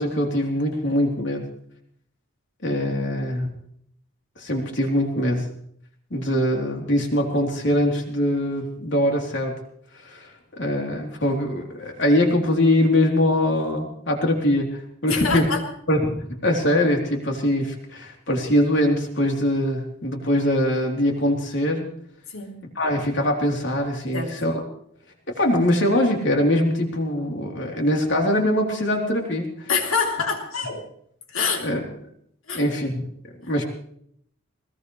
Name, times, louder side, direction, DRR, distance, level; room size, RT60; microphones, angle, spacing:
voice 1, 0.0-1.5 2.6-3.5 4.4-5.5 6.1-9.6 9.9-15.5 15.9-21.9 22.8-24.6 25.3-29.7 31.6-31.8 32.5-33.1 33.5-33.6, left 1 dB, 60° left, 1 dB, 3.6 m, -22 dB
voice 2, 15.1-15.7 22.3-22.5 24.1-24.3 29.7-30.9 31.3-31.7 32.5-32.6, left 5 dB, 85° left, 2 dB, 3.3 m, -25 dB
21.0 x 19.0 x 3.3 m, 0.67 s
head